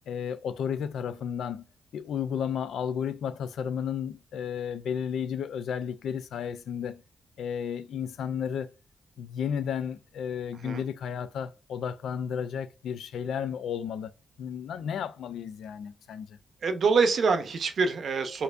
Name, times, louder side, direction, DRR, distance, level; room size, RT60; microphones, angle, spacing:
voice 1, 0.1-1.6 1.9-7.0 7.4-8.7 9.2-14.1 14.4-16.4, left 8 dB, 85° left, 0.3 m, -33 dB
voice 2, 16.6-18.4, right 4 dB, 60° right, 0.6 m, -25 dB
4.4 x 2.5 x 2.4 m
cardioid pair, 85°, 0 cm